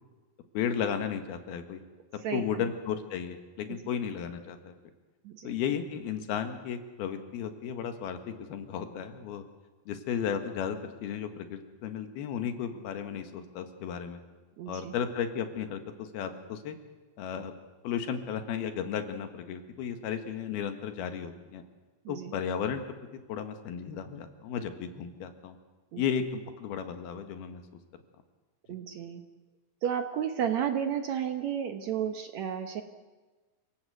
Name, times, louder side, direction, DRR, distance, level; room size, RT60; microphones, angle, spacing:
voice 1, 0.5-1.8 2.3-4.7 5.4-9.4 9.9-14.2 14.7-16.8 17.2-17.5 17.8-21.6 22.1-22.8 23.3-25.6 26.0-27.6, left 8 dB, 85° left, 7 dB, 3.6 m, -34 dB
voice 2, 2.2-2.6 3.7-3.8 5.2-5.5 14.6-14.9 22.1-22.3 25.9-26.0 28.7-29.2 29.8-32.8, right 8 dB, 70° right, 7 dB, 1.8 m, -32 dB
27.0 x 18.0 x 8.0 m, 1.3 s
omnidirectional pair, 4.3 m